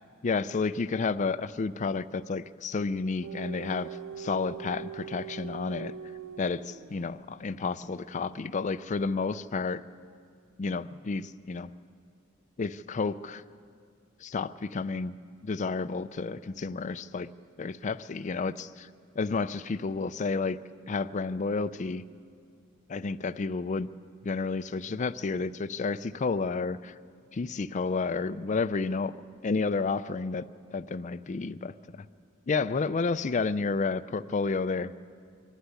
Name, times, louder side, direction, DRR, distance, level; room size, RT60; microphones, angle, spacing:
voice 1, 0.2-5.9 6.4-9.8 10.6-11.7 12.6-13.4 14.2-15.1 15.4-17.3 17.6-18.9 19.2-20.6 20.9-22.0 22.9-23.9 24.2-27.0 27.3-29.1 29.4-30.5 30.7-32.1 32.5-34.9, left 4 dB, 35° left, 13 dB, 0.4 m, -31 dB
sound 1, 3.2-7.2, right 8 dB, 90° right, 0.5 m, -42 dB
24.5 x 11.5 x 9.8 m, 2.2 s
head